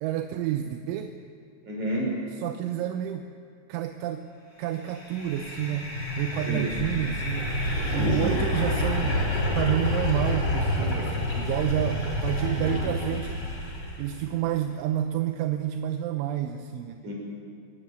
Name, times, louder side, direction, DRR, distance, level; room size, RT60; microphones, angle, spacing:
voice 1, 0.0-1.1 2.4-3.3 3.7-4.3 4.6-7.5 7.9-9.2 9.6-13.4 14.0-17.0, right 11 dB, 80° right, 6 dB, 3.0 m, -29 dB
voice 2, 1.6-2.1 6.4-6.7 7.9-8.4 12.3-13.1 17.0-17.1, equal, 35° right, -2 dB, 7.3 m, -31 dB
sound 1, 4.9-14.1, left 1 dB, 25° left, 3.3 m, -28 dB
26.0 x 14.5 x 9.4 m, 2.4 s
omnidirectional pair, 5.9 m